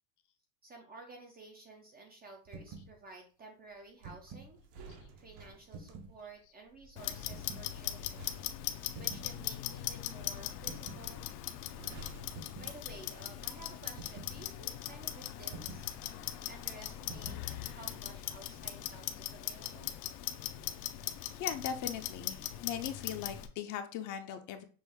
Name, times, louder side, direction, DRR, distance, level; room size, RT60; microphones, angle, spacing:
voice 1, 0.6-4.6 5.2-8.4 8.7-11.3 12.6-16.0 16.5-17.4 17.7-19.9, right 3 dB, 20° right, 2 dB, 0.4 m, -53 dB
sound 1, 2.5-2.9 3.8-4.5 5.7-6.2 7.3-7.7 8.9-9.3 10.7-11.1 12.3-12.8 14.0-14.4 15.5-15.9 17.1-17.5, right 4 dB, 60° right, 1.3 m, -48 dB
sound 2, 4.0-13.4 13.6-13.9, right 3 dB, 80° right, 1.3 m, -56 dB
Clock, 7.0-23.5, left 13 dB, 80° left, 0.7 m, -40 dB
voice 2, 21.3-24.6, left 8 dB, 40° left, 8 dB, 0.5 m, -39 dB
6.2 x 2.4 x 3.5 m, 0.38 s
cardioid pair, 155°, 48 cm